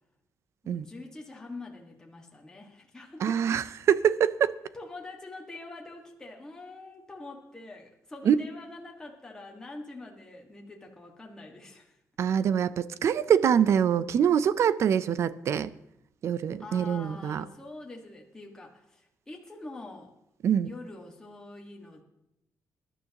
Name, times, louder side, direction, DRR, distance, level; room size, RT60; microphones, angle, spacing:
voice 1, 0.6-3.4 4.7-12.0 16.6-20.1 20.6-22.0, left 2 dB, 10° left, 1.7 m, -45 dB
voice 2, 3.2-4.6 8.2-8.3 12.2-15.7 16.2-17.4 20.4-20.7, right 8 dB, 55° right, 0.5 m, -24 dB
21.0 x 12.0 x 3.0 m
cardioid pair, 155°, 6 cm